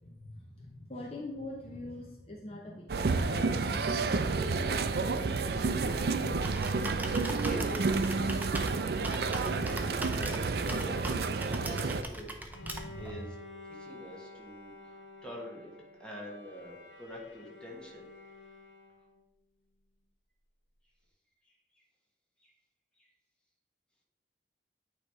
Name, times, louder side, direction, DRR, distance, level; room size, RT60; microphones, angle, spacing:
voice 1, 0.0-3.9 4.3-4.8 5.7-6.7 8.2-8.7 9.5-9.8 12.6-13.2, left 1 dB, 35° left, -1 dB, 0.7 m, -44 dB
sound 1, 2.9-12.0, right 4 dB, 60° right, 0.4 m, -30 dB
Computer keyboard, 5.8-13.1, right 1 dB, 10° right, 0.5 m, -41 dB
voice 2, 7.4-8.4 8.8-13.3 13.7-15.7 16.0-18.1 21.4-21.8 22.4-22.5 22.9-23.1, equal, 5° left, -2 dB, 1.3 m, -46 dB
Bowed string instrument, 12.5-19.2, left 2 dB, 80° left, 1.1 m, -51 dB
8.9 x 3.1 x 4.7 m, 1.1 s
head